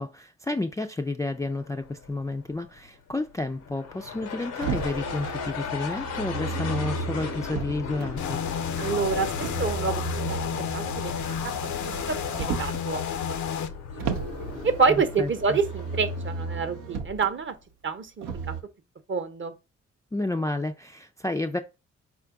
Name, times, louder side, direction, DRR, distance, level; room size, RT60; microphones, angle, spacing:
voice 1, 0.0-8.4 15.2-15.6 20.1-21.6, left 2 dB, 10° left, 0.4 m, -31 dB
sound 1, 1.4-17.4, left 6 dB, 85° left, 0.9 m, -37 dB
Motor vehicle (road), 4.6-8.1 9.4-12.9 14.0-17.3 18.2-18.6, right 5 dB, 80° right, 0.6 m, -34 dB
sound 2, 8.2-13.7, left 8 dB, 65° left, 0.6 m, -31 dB
voice 2, 8.8-10.0 10.3-10.4 10.7-11.5 11.8-13.4 13.9-14.2 14.6-17.5 17.8-18.5 19.1-19.5, right 5 dB, 40° right, 0.8 m, -28 dB
4.4 x 2.4 x 3.7 m
hypercardioid pair, 40°, 32 cm